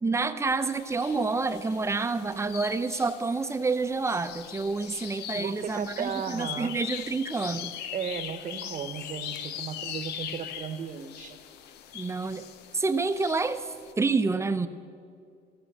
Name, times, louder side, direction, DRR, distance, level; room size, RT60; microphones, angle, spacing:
voice 1, 0.0-7.7 11.9-12.5 12.7-13.7 14.0-14.7, right 3 dB, 15° right, 10 dB, 0.7 m, -28 dB
sound 1, 0.6-13.9, left 10 dB, 75° left, 0.8 m, -41 dB
voice 2, 5.3-6.7 7.9-11.4, right 7 dB, 50° right, 10 dB, 1.1 m, -35 dB
15.0 x 14.0 x 6.7 m, 2.3 s
cardioid pair, 110°, 17 cm